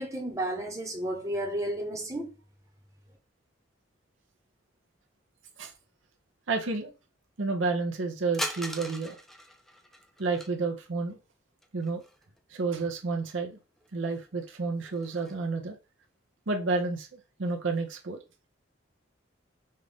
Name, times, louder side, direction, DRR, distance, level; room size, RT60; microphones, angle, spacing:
voice 1, 0.0-2.3, right 1 dB, 15° right, 1.0 m, -32 dB
voice 2, 6.5-6.9 7.4-9.2 10.2-11.2 11.7-12.0 12.5-13.6 13.9-15.8 16.5-18.2, right 3 dB, 80° right, 0.8 m, -30 dB
sound 1, 8.3-10.5 11.6-12.4 12.7-12.8 13.8-13.9 14.3-15.4, equal, ahead, 0.3 m, -39 dB
5.4 x 2.5 x 3.5 m
head